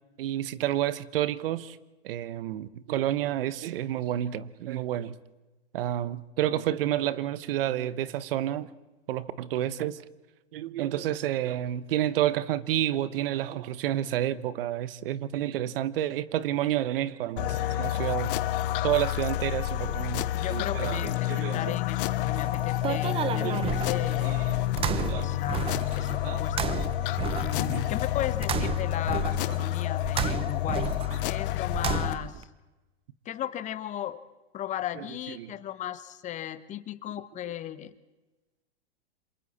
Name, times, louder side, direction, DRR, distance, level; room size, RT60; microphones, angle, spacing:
voice 1, 0.2-1.8 2.0-5.2 5.7-8.7 9.1-10.0 10.5-18.4 18.8-21.8 23.4-23.8 24.2-24.4 24.8-25.3 26.2-26.4 27.7-27.8 35.0-35.1 35.4-35.5, right 12 dB, 60° right, 1.2 m, -30 dB
sound 1, 17.4-32.1, left 14 dB, 55° left, 0.9 m, -29 dB
voice 2, 20.3-24.5 25.2-26.8 27.4-32.5 33.2-34.2 34.5-37.9, left 11 dB, 20° left, 1.0 m, -36 dB
sound 2, 22.2-32.4, right 8 dB, 15° right, 0.8 m, -33 dB
28.5 x 27.0 x 4.3 m
hypercardioid pair, 130°, 33 cm